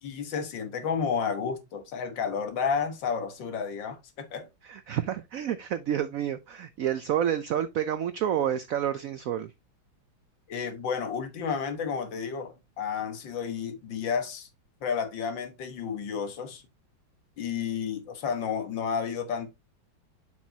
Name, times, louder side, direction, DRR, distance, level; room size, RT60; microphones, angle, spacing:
voice 1, 0.0-4.5 10.5-14.5 14.8-16.6 17.4-19.5, left 6 dB, 70° left, 2.0 m, -31 dB
voice 2, 4.6-9.5, right 10 dB, 80° right, 0.7 m, -29 dB
7.2 x 6.3 x 2.7 m
omnidirectional pair, 2.1 m